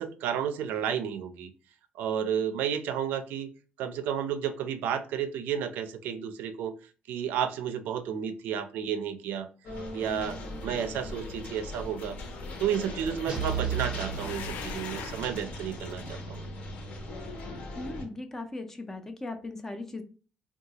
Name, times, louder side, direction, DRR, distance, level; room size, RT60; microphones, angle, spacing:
voice 1, 0.0-1.5 2.0-3.5 3.8-6.7 7.1-9.5 9.9-12.2 12.6-16.4, right 8 dB, 90° right, 10 dB, 0.4 m, -32 dB
sound 1, 9.6-18.0, left 2 dB, 50° left, 0.7 m, -40 dB
sound 2, 10.0-15.2, left 5 dB, 90° left, 0.4 m, -44 dB
sound 3, 13.3-15.2, right 8 dB, 35° right, 0.7 m, -34 dB
voice 2, 17.8-20.0, left 2 dB, 15° left, 7 dB, 0.3 m, -38 dB
3.7 x 2.3 x 2.7 m, 0.37 s
cardioid pair, 175°, 3 cm